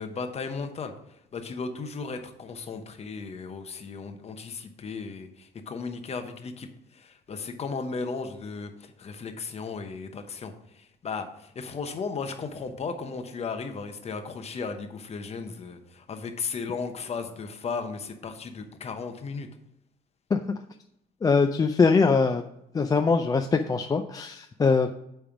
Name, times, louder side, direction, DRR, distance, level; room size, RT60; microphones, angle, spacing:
voice 1, 0.0-19.5, left 4 dB, 40° left, 7 dB, 1.0 m, -35 dB
voice 2, 21.2-22.4 22.7-24.9, left 4 dB, 20° left, 6 dB, 0.4 m, -22 dB
8.8 x 3.5 x 5.8 m, 0.81 s
cardioid pair, 110°, 17 cm